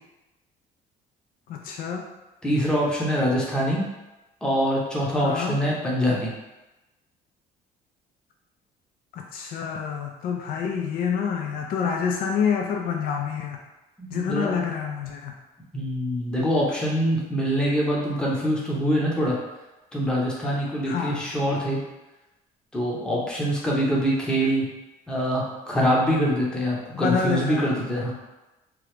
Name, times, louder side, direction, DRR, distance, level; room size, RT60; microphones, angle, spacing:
voice 1, 1.5-2.1 5.2-5.6 9.1-13.6 14.1-15.3 20.8-21.2 26.9-27.8, left 6 dB, 60° left, 2 dB, 0.4 m, -27 dB
voice 2, 2.4-3.8 4.4-6.3 14.0-14.6 15.7-19.3 19.9-21.8 22.7-24.7 25.1-28.1, equal, 5° left, -5 dB, 0.7 m, -24 dB
3.0 x 2.4 x 3.2 m, 1.0 s
cardioid pair, 110°, 17 cm